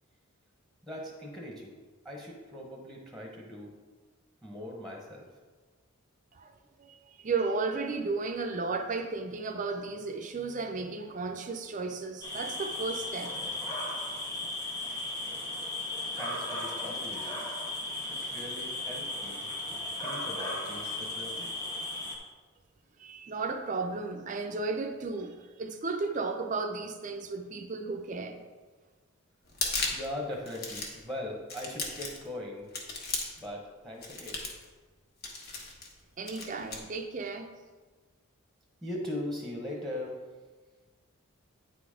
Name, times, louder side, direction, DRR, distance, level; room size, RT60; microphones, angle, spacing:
voice 1, 0.8-1.8 2.0-3.7 4.4-5.2 16.1-17.4 18.1-19.5 20.0-21.6 29.9-32.7 33.4-34.4 38.8-40.1, left 1 dB, ahead, -1 dB, 1.0 m, -40 dB
voice 2, 6.8-13.6 23.0-28.4 36.2-37.5, right 3 dB, 35° right, 5 dB, 0.5 m, -34 dB
sound 1, 12.2-22.2, left 2 dB, 20° left, 1.2 m, -36 dB
sound 2, 29.5-30.1 30.5-31.0 31.5-32.3 32.7-33.5 34.0-34.6 35.2-35.9 36.3-36.8, left 3 dB, 45° left, 1.2 m, -35 dB
9.1 x 4.0 x 4.9 m, 1.3 s
head